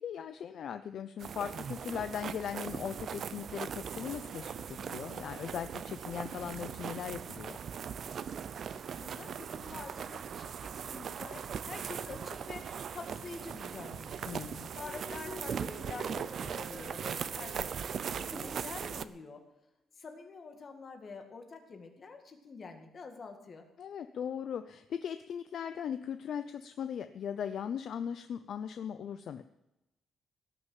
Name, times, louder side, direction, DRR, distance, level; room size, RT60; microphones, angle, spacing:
voice 1, 0.0-7.6 14.2-14.7 23.8-29.4, left 8 dB, 50° left, 10 dB, 0.6 m, -39 dB
sound 1, 1.2-19.0, right 7 dB, 45° right, 0.6 m, -40 dB
voice 2, 8.3-14.3 14.7-19.4 20.0-23.7, left 4 dB, 30° left, 4 dB, 2.0 m, -47 dB
sound 2, 14.8-19.2, equal, 10° right, 3.0 m, -48 dB
18.0 x 6.6 x 9.1 m, 0.94 s
cardioid pair, 170°, 0 cm